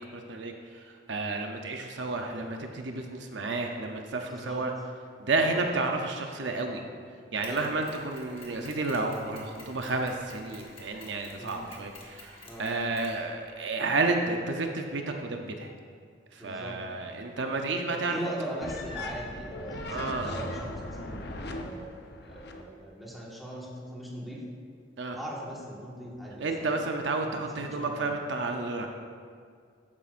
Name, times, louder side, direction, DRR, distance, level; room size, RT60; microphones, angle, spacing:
voice 1, 0.0-4.7 5.2-6.8 7.3-15.7 16.3-18.2 19.9-20.3 25.0-25.2 26.4-28.9, right 3 dB, 70° right, 3 dB, 0.7 m, -31 dB
voice 2, 4.3-4.7 5.4-5.6 7.5-7.7 11.4-11.7 12.4-12.7 16.4-16.8 18.1-21.9 22.2-24.4 25.1-26.7 27.2-28.1, right 1 dB, ahead, -5 dB, 1.6 m, -40 dB
Mechanisms, 7.4-13.8, left 2 dB, 30° left, 1.6 m, -51 dB
sound 1, 18.6-22.6, left 2 dB, 60° left, 0.8 m, -39 dB
12.5 x 9.5 x 2.6 m, 2.1 s
head